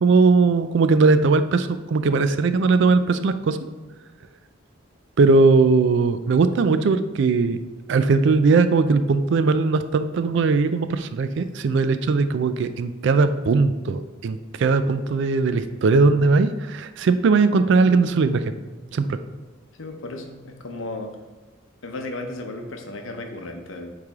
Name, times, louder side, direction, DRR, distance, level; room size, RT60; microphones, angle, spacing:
voice 1, 0.0-3.6 5.2-7.6 7.9-18.4 18.9-19.1, right 4 dB, 60° right, 11 dB, 0.3 m, -19 dB
voice 2, 19.8-21.1 21.8-23.9, left 2 dB, 70° left, 4 dB, 0.7 m, -34 dB
8.3 x 3.3 x 3.5 m, 1.2 s
head